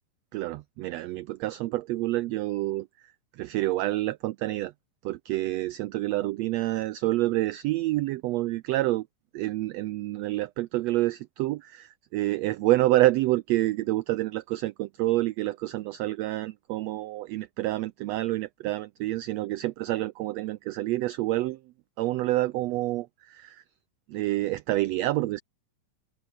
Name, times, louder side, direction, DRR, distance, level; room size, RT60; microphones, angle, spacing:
voice 1, 0.3-4.7 5.0-9.1 9.3-21.6 22.0-23.6 24.1-25.4, right 17 dB, 80° right, 1.5 m, -28 dB
open air
omnidirectional pair, 3.6 m